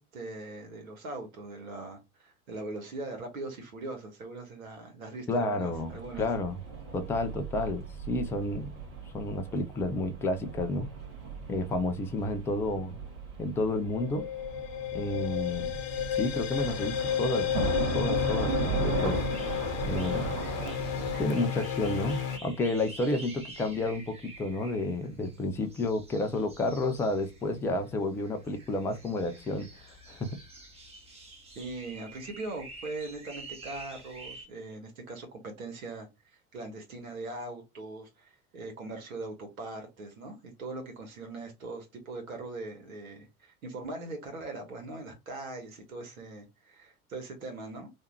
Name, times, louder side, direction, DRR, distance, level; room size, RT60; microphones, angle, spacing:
voice 1, 0.0-6.3 31.5-36.1 36.5-47.9, right 2 dB, 70° right, 1.7 m, -41 dB
voice 2, 5.3-6.6 6.9-8.7 9.1-10.9 11.5-13.0 13.4-14.2 14.9-15.8 16.1-17.5 17.9-19.2 19.8-20.4 21.2-29.7 30.1-30.3, left 2 dB, 5° left, 0.4 m, -31 dB
sound 1, 5.7-21.3, right 4 dB, 50° right, 1.8 m, -37 dB
sound 2, 13.7-22.4, left 9 dB, 40° left, 0.9 m, -32 dB
sound 3, 18.9-34.5, right 2 dB, 15° right, 1.3 m, -49 dB
3.4 x 2.7 x 4.4 m
figure-of-eight pair, 80°, 43 cm